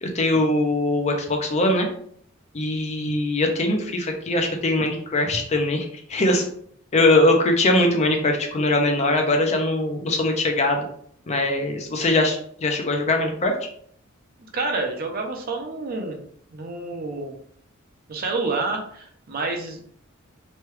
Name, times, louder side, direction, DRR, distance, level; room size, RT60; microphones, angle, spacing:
voice 1, 0.0-1.9 2.5-6.4 6.9-10.9 11.3-13.5, left 2 dB, 30° left, 3 dB, 0.5 m, -21 dB
voice 2, 14.5-16.2 16.5-17.3 18.1-19.8, right 3 dB, 45° right, 3 dB, 0.5 m, -28 dB
3.0 x 2.2 x 3.1 m, 0.62 s
head